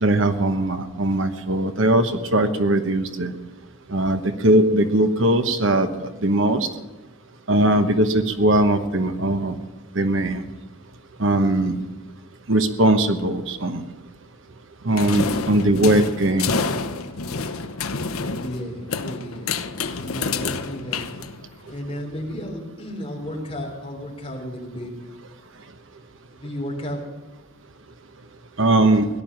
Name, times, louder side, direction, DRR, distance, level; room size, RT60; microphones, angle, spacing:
voice 1, 0.0-3.3 3.9-5.9 6.2-6.7 7.5-9.6 9.9-10.4 11.2-11.8 12.5-13.8 14.8-16.5 28.6-29.1, right 1 dB, 60° right, 8 dB, 1.1 m, -20 dB
sound 1, 15.0-21.7, left 4 dB, 85° left, 0.9 m, -28 dB
voice 2, 18.4-19.5 20.0-21.0 21.7-24.9 26.3-27.0, equal, 25° left, 0 dB, 3.6 m, -33 dB
17.5 x 11.0 x 7.4 m, 1.1 s
head